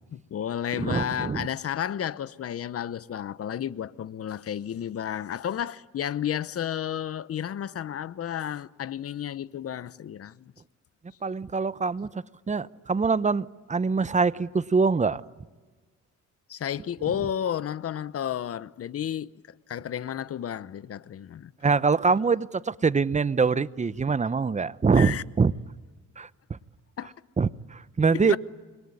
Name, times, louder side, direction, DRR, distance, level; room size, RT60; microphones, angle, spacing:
voice 1, 0.1-10.5 16.5-19.3 19.7-21.5 25.0-25.2 27.0-27.1 28.1-28.4, left 9 dB, 50° left, 0.9 m, -32 dB
voice 2, 0.7-1.5 11.2-15.2 21.6-25.5 26.2-26.6 27.4-28.4, right 4 dB, 25° right, 0.8 m, -24 dB
27.0 x 22.0 x 9.8 m
cardioid pair, 90°, 30 cm